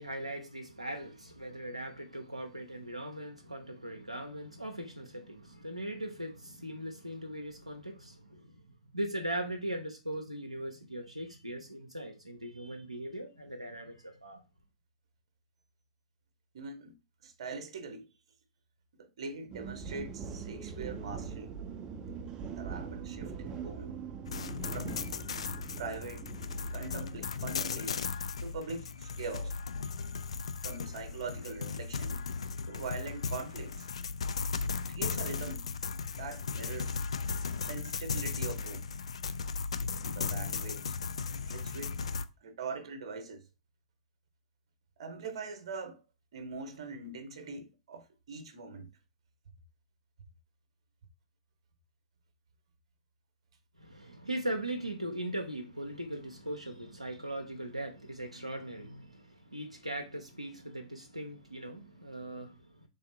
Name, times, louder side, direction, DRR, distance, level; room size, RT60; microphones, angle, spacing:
voice 1, 0.0-8.6 8.9-14.4 53.8-62.9, right 1 dB, 90° right, 0.5 m, -39 dB
voice 2, 16.5-17.0 17.2-18.1 19.0-21.5 22.6-24.0 24.7-25.1 25.8-26.3 26.7-29.6 30.6-32.2 32.7-33.9 34.9-35.7 36.1-37.1 37.7-38.9 40.0-40.9 41.4-41.9 42.4-43.4 45.0-46.0 46.3-48.9, right 4 dB, 55° right, 0.8 m, -42 dB
sound 1, 19.5-27.7, right 6 dB, 25° right, 0.5 m, -42 dB
sound 2, 24.3-42.3, left 5 dB, 65° left, 0.3 m, -36 dB
3.4 x 3.2 x 2.7 m
figure-of-eight pair, 100°, 3 cm